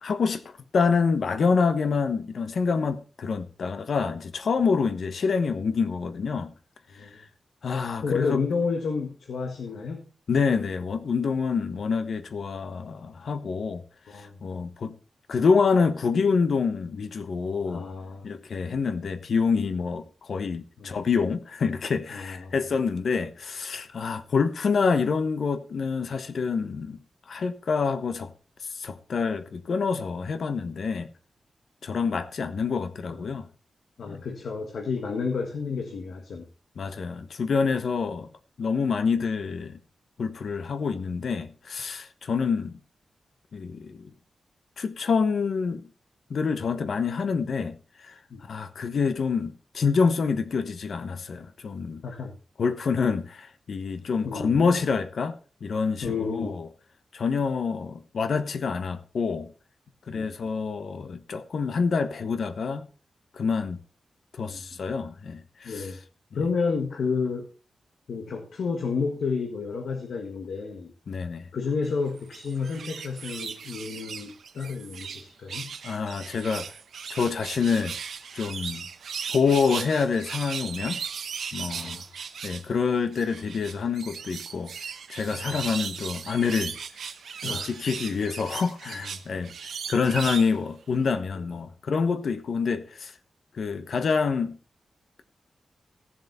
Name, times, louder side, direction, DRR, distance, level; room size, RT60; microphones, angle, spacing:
voice 1, 0.0-6.5 6.9-7.2 7.6-8.4 10.3-13.8 14.1-15.0 15.3-17.9 18.2-27.0 27.3-28.3 28.7-31.1 31.8-33.5 34.1-34.2 36.8-38.3 38.6-39.8 40.2-42.8 43.5-44.1 44.8-45.9 46.3-52.0 52.6-56.7 57.1-59.5 60.1-62.9 63.3-63.8 64.3-65.9 71.1-71.5 75.8-76.7 77.1-77.9 78.3-78.9 79.3-81.0 81.5-82.0 82.4-84.7 85.1-86.8 87.4-89.5 89.9-93.1 93.5-94.6, left 5 dB, 65° left, 1.1 m, -27 dB
voice 2, 8.0-10.0 14.1-14.3 17.6-18.3 20.8-20.9 22.1-22.5 33.1-33.2 34.0-36.5 48.3-48.4 52.0-52.3 54.2-54.7 56.0-56.5 60.1-60.3 64.5-64.6 65.6-66.0 66.3-67.5 68.1-70.9 71.5-75.7 81.7-82.0 85.3-85.5 87.4-87.7 88.9-89.0 91.3-91.4, left 5 dB, 80° left, 1.6 m, -30 dB
sound 1, 72.2-75.2 75.5-82.7 83.1-90.6 91.0-91.1, right 6 dB, 90° right, 0.9 m, -37 dB
15.5 x 7.3 x 4.3 m
wide cardioid pair, 130°, 0 cm